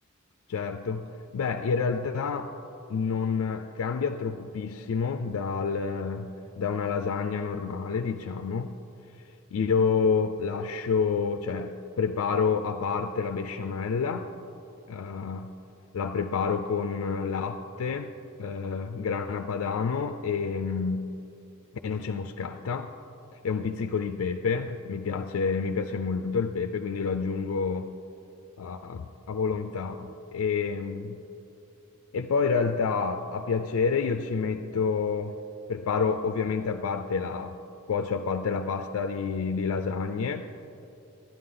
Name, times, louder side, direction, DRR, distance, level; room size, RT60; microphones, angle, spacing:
voice 1, 0.5-2.5 2.9-8.7 9.5-14.3 14.9-15.5 15.9-18.1 18.4-21.2 21.8-22.9 23.3-27.9 28.6-31.2 32.1-35.3 35.7-37.6 37.9-40.5, left 5 dB, 80° left, 7 dB, 0.4 m, -29 dB
11.0 x 10.5 x 3.8 m, 3.0 s
head